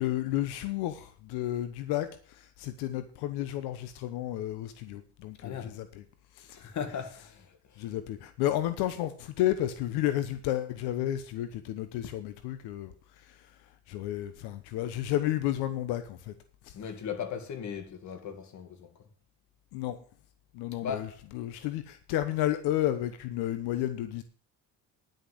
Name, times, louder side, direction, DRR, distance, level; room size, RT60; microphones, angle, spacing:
voice 1, 0.0-6.0 6.3-6.6 7.8-16.3 16.6-16.7 19.7-20.0 20.5-24.2, left 13 dB, 90° left, 1.1 m, -32 dB
voice 2, 5.4-5.7 6.5-7.9 16.7-18.9 20.8-21.1, left 7 dB, 50° left, 2.1 m, -38 dB
10.5 x 6.7 x 7.8 m
cardioid pair, 115°, 38 cm